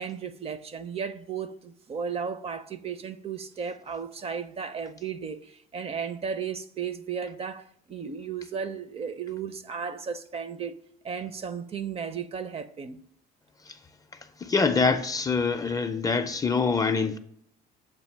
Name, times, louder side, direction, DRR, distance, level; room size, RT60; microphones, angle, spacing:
voice 1, 0.0-10.7 11.0-13.0, right 6 dB, 35° right, 0.5 m, -34 dB
voice 2, 14.4-17.2, left 4 dB, 20° left, 0.4 m, -25 dB
7.3 x 2.8 x 5.6 m
cardioid pair, 110°, 17 cm